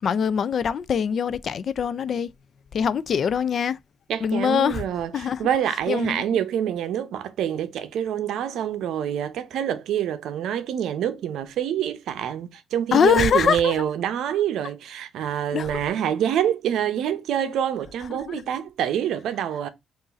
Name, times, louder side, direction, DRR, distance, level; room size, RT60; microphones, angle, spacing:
voice 1, 0.0-2.3 2.7-3.8 4.2-4.8 5.1-5.5 5.9-6.3 12.9-13.8 15.5-15.7 18.1-18.4, left 7 dB, 55° left, 0.3 m, -23 dB
voice 2, 4.1-5.1 5.4-19.7, right 9 dB, 80° right, 0.6 m, -26 dB
3.8 x 2.5 x 4.0 m
cardioid pair, 90°, 0 cm